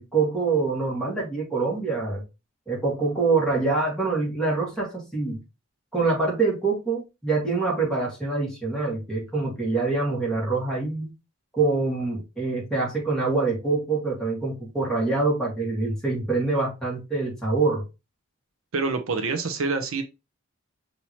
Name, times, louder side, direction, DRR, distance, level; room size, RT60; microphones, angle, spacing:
voice 1, 0.0-2.2 2.7-5.4 5.9-11.1 11.6-17.8, right 3 dB, 5° left, 2.0 m, -25 dB
voice 2, 18.7-20.0, right 4 dB, 75° right, 0.7 m, -26 dB
5.6 x 2.9 x 3.0 m
head